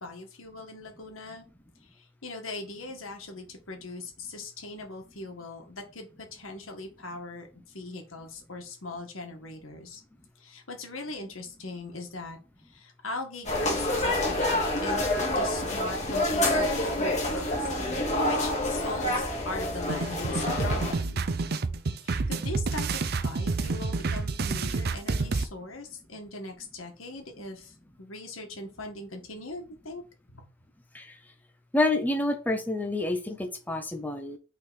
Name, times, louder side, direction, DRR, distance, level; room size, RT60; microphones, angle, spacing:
voice 1, 0.0-1.5 1.8-10.0 10.4-12.4 12.6-17.7 18.3-21.2 22.0-30.0 30.3-30.5, left 2 dB, 90° left, 1.7 m, -40 dB
sound 1, 13.5-20.9, left 1 dB, 35° left, 1.9 m, -27 dB
sound 2, 19.9-25.4, right 3 dB, 50° right, 0.5 m, -29 dB
voice 2, 31.7-34.4, left 2 dB, 10° left, 0.6 m, -28 dB
5.8 x 3.9 x 4.1 m
head